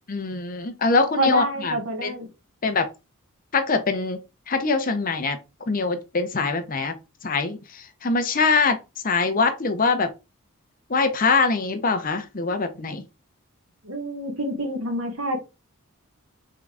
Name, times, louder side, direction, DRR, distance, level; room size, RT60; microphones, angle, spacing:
voice 1, 0.1-2.1 2.6-2.9 3.5-4.2 4.5-5.4 5.7-6.9 7.2-8.8 9.0-10.1 10.9-13.0, left 4 dB, 40° left, 0.7 m, -23 dB
voice 2, 1.2-2.3 13.8-15.4, right 1 dB, 70° right, 1.3 m, -27 dB
3.7 x 3.7 x 3.3 m
head